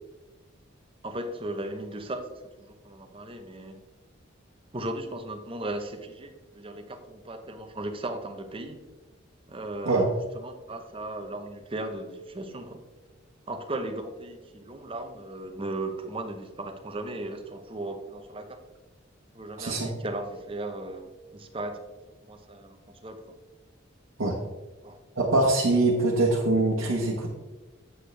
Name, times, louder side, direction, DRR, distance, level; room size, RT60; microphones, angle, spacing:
voice 1, 1.0-2.3 2.6-3.8 4.7-8.8 9.5-12.8 13.5-18.6 19.3-21.8 22.2-23.4 24.8-25.0, right 2 dB, 25° right, 6 dB, 0.8 m, -36 dB
voice 2, 19.6-19.9 24.2-24.4 25.2-27.3, right 2 dB, 85° right, -4 dB, 1.2 m, -23 dB
8.2 x 7.9 x 3.3 m, 1.2 s
head